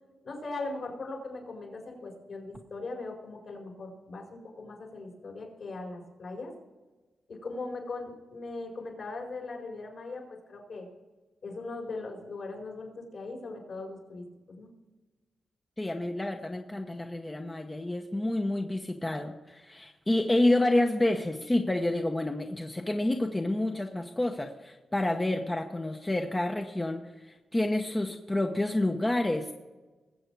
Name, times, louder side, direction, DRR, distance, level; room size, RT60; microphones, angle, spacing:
voice 1, 0.2-6.5 7.3-10.9 11.4-14.7, left 3 dB, 60° left, 1 dB, 4.7 m, -39 dB
voice 2, 15.8-29.5, left 1 dB, 15° left, 4 dB, 0.9 m, -29 dB
21.0 x 7.9 x 4.7 m, 1.2 s
cardioid pair, 100°, 0 cm